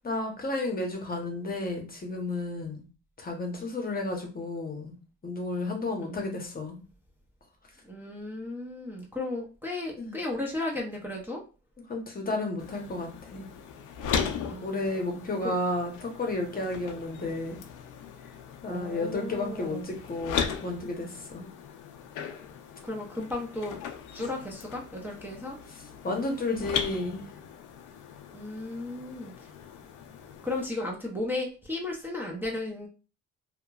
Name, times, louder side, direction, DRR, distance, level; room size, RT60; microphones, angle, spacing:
voice 1, 0.0-2.8 3.2-4.9 5.2-6.8 10.0-10.1 11.9-13.5 14.6-17.6 18.6-21.5 26.0-27.2, left 2 dB, 30° left, 2 dB, 0.8 m, -32 dB
voice 2, 7.8-11.4 14.4-15.5 18.7-19.9 22.8-23.8 24.1-25.6 28.3-29.5 30.4-32.9, left 2 dB, 5° right, -3 dB, 0.6 m, -35 dB
sound 1, 12.6-30.7, left 7 dB, 85° left, 0.5 m, -38 dB
2.8 x 2.2 x 2.3 m, 0.34 s
cardioid pair, 90°, 30 cm